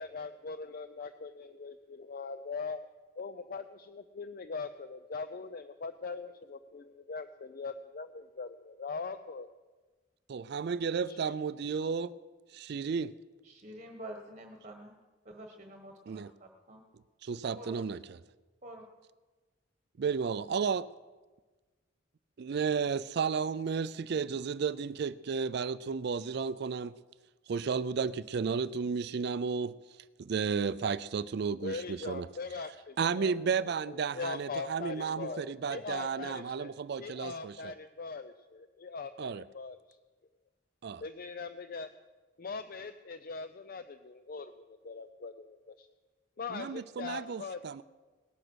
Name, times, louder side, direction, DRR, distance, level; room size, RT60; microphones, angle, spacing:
voice 1, 0.0-2.9 3.2-9.5 11.0-11.4 31.6-36.7 37.0-39.8 41.0-41.9 42.4-45.9 46.4-47.8, left 4 dB, 50° left, 11 dB, 0.5 m, -41 dB
voice 2, 10.3-12.1 12.5-13.1 16.1-16.3 17.2-18.2 20.0-20.8 22.4-26.9 27.5-29.7 30.2-32.3 33.0-37.7 39.2-39.4 40.8-41.0 46.5-47.8, right 5 dB, 60° right, 16 dB, 0.4 m, -33 dB
voice 3, 13.4-14.9 15.2-16.8 17.5-17.8 18.6-18.8, right 1 dB, 35° right, 3 dB, 1.3 m, -47 dB
18.5 x 10.0 x 6.3 m, 1.3 s
head